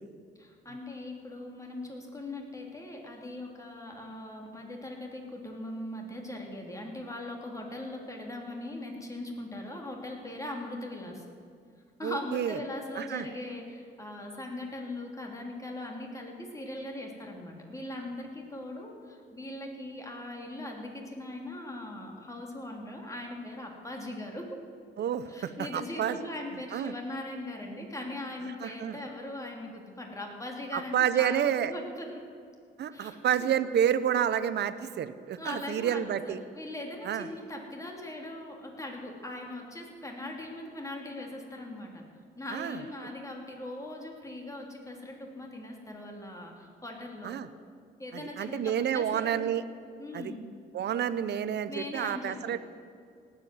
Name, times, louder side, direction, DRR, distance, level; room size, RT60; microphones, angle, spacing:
voice 1, 0.4-11.2 12.0-24.6 25.3-32.2 32.9-33.5 35.4-42.0 42.4-47.4 48.0-49.4 50.0-50.4 51.7-52.6, left 1 dB, 15° left, 0 dB, 3.1 m, -40 dB
voice 2, 12.0-12.6 13.0-13.3 25.0-26.2 26.7-26.9 28.6-29.0 30.7-31.7 32.8-36.4 37.0-37.3 42.5-42.8 47.2-47.5 48.1-49.6 50.1-50.3 50.7-52.6, right 9 dB, 60° right, 13 dB, 0.7 m, -29 dB
18.0 x 8.3 x 7.7 m, 2.2 s
cardioid pair, 90°, 20 cm